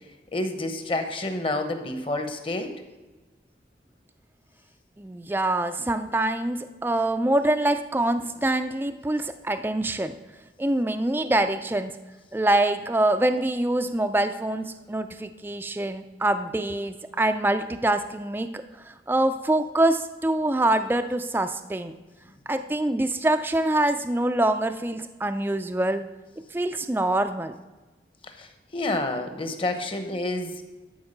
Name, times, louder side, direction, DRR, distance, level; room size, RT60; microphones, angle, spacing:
voice 1, 0.3-2.7 28.2-30.5, left 2 dB, 30° left, 7 dB, 0.9 m, -29 dB
voice 2, 5.0-10.2 10.6-11.9 12.3-22.0 22.5-26.0 26.5-27.6, right 1 dB, 10° right, 9 dB, 0.3 m, -25 dB
12.5 x 4.7 x 6.5 m, 1.2 s
head